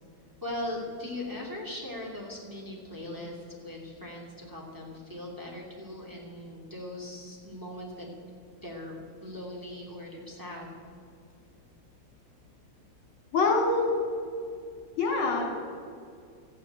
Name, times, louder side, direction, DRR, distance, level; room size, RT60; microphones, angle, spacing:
voice 1, 0.4-8.1 8.6-10.7, left 1 dB, 10° right, -2 dB, 2.5 m, -39 dB
voice 2, 13.3-13.9 15.0-15.6, left 3 dB, 75° left, 1 dB, 3.5 m, -25 dB
14.0 x 9.5 x 9.0 m, 2.3 s
omnidirectional pair, 2.3 m